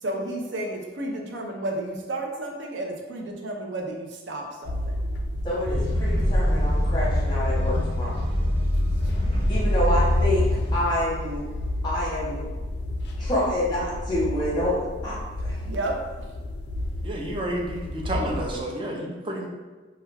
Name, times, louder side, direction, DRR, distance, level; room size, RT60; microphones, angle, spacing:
voice 1, 0.0-4.9 9.7-10.0 15.6-16.0, right 1 dB, 80° right, 1 dB, 0.5 m, -32 dB
sound 1, 4.6-18.6, left 1 dB, 65° left, 0.3 m, -32 dB
voice 2, 5.4-8.2 9.5-10.5 10.7-11.5 11.8-12.5 13.2-15.6, left 1 dB, 25° left, -7 dB, 0.7 m, -27 dB
sound 2, 5.6-10.8, left 1 dB, 65° right, 1.2 m, -24 dB
voice 3, 17.0-19.5, right 1 dB, 30° right, 0 dB, 0.4 m, -30 dB
2.3 x 2.2 x 3.2 m, 1.3 s
head